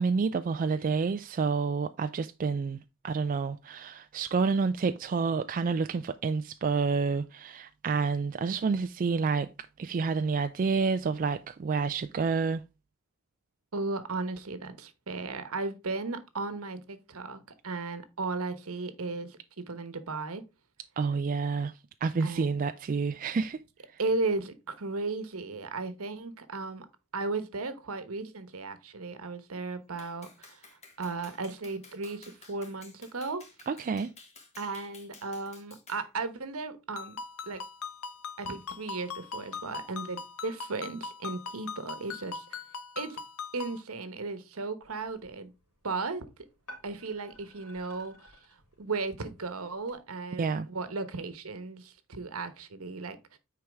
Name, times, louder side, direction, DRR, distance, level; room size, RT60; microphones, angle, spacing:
voice 1, 0.0-9.5 9.8-12.6 21.0-23.6 33.7-34.1 50.4-50.7, right 4 dB, 40° right, 0.3 m, -29 dB
voice 2, 13.7-20.4 22.2-22.5 24.0-26.9 27.1-30.7 31.0-33.4 34.6-37.2 37.5-37.6 38.4-42.6 43.0-43.2 43.5-45.5 45.8-46.2 46.8-48.3 48.8-53.4, right 3 dB, 70° right, 1.1 m, -35 dB
Clapping, 30.0-36.1, left 4 dB, 30° left, 1.8 m, -54 dB
Ringtone, 37.0-43.8, left 5 dB, 70° left, 0.6 m, -41 dB
sound 1, 44.8-50.0, equal, 85° left, 3.4 m, -55 dB
9.4 x 4.7 x 3.5 m
head